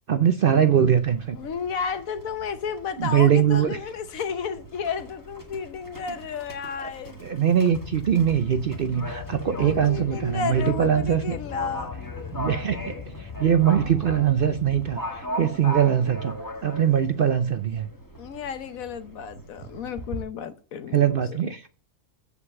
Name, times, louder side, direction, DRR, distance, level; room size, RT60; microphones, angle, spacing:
voice 1, 0.1-1.4 3.0-3.8 6.8-6.9 7.2-11.4 12.3-16.3 16.6-17.9 20.9-21.7, right 9 dB, 60° right, 0.6 m, -22 dB
Livestock farm animals working animals, 0.9-20.2, equal, 15° left, 1.7 m, -39 dB
voice 2, 1.3-7.2 9.3-12.0 18.2-21.4, left 6 dB, 75° left, 1.3 m, -32 dB
sound 1, 7.7-15.0, left 6 dB, 40° left, 0.5 m, -38 dB
8.3 x 5.1 x 7.1 m
omnidirectional pair, 1.5 m